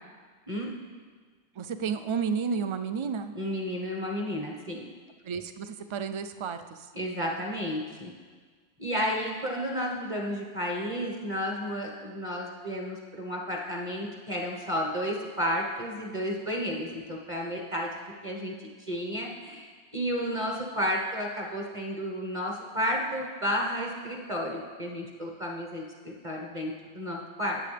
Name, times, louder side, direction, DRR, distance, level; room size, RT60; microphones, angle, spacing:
voice 1, 1.6-3.3 5.2-6.9, right 6 dB, 50° right, 9 dB, 0.3 m, -32 dB
voice 2, 3.3-4.8 6.9-8.1 8.8-17.9 18.2-27.6, equal, 30° right, -1 dB, 1.2 m, -32 dB
17.5 x 7.5 x 3.4 m, 1.5 s
omnidirectional pair, 1.1 m